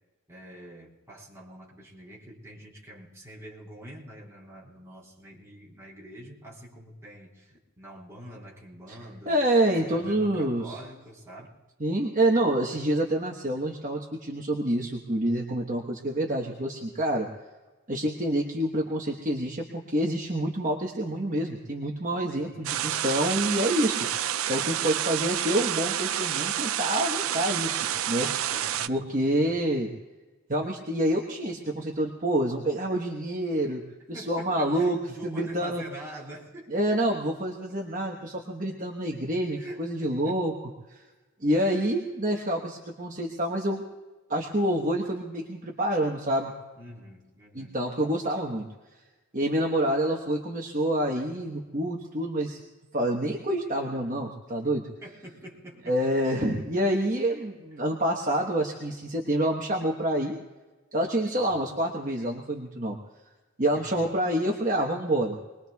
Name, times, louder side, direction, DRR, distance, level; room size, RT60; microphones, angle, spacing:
voice 1, 0.3-9.4 9.8-11.5 22.4-23.0 28.5-29.6 34.1-37.2 39.6-40.4 41.7-41.9 46.8-47.8 55.0-56.0 61.4-61.7 63.7-64.0, right 1 dB, 15° right, -5 dB, 3.8 m, -45 dB
voice 2, 9.3-10.8 11.8-17.3 17.9-24.1 24.5-28.3 28.9-29.9 30.5-33.8 34.1-35.8 36.7-40.5 40.9-41.0 41.4-43.8 44.3-46.5 47.5-48.7 49.3-52.6 52.9-54.9 55.9-60.4 60.9-63.0 63.6-65.4, right 1 dB, 35° right, 0 dB, 1.2 m, -27 dB
sound 1, 22.6-28.9, right 11 dB, 70° right, 0.4 m, -29 dB
27.0 x 21.0 x 2.3 m, 1.2 s
head